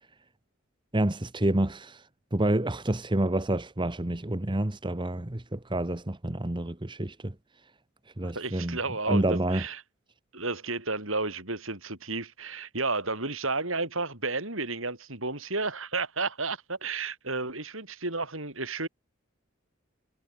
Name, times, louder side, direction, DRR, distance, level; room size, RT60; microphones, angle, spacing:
voice 1, 0.9-7.3 8.2-8.8 9.1-9.6, right 1 dB, 20° right, 1.1 m, -28 dB
voice 2, 8.2-9.8 10.3-18.9, right 3 dB, 70° right, 7.9 m, -32 dB
head